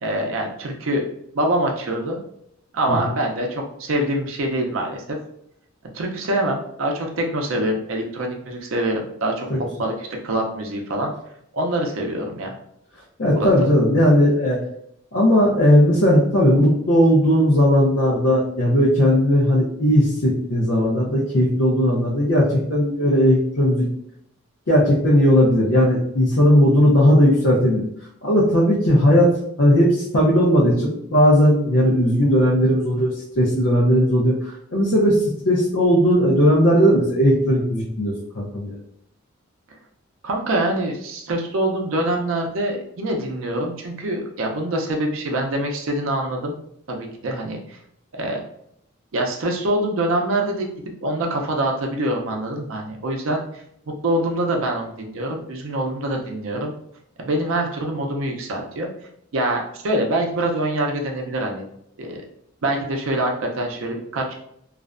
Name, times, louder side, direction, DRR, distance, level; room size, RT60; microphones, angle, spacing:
voice 1, 0.0-1.1 1.3-2.2 2.7-5.2 5.9-9.5 9.8-11.1 11.5-12.5 13.3-13.5 40.2-46.6 46.9-47.8 48.1-48.4 49.1-50.7 51.0-53.4 54.0-56.7 57.2-58.9 59.3-61.6 62.0-62.2 62.6-64.3, right 1 dB, 70° right, 2 dB, 0.5 m, -24 dB
voice 2, 13.2-14.6 15.1-23.9 24.7-27.8 28.2-29.3 29.6-38.7, equal, 60° left, -6 dB, 0.5 m, -17 dB
2.4 x 2.1 x 2.4 m, 0.73 s
head